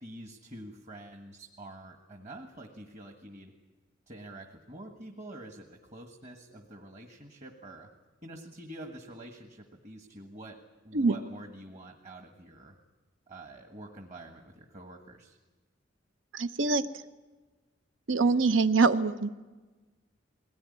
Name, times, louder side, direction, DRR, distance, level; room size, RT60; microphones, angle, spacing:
voice 1, 0.0-3.5 4.1-7.9 8.2-12.8 13.3-15.4, right 1 dB, 40° right, 3 dB, 1.6 m, -47 dB
voice 2, 16.3-16.8 18.1-19.5, right 4 dB, 85° right, 11 dB, 0.8 m, -24 dB
22.0 x 18.0 x 9.8 m, 1.3 s
head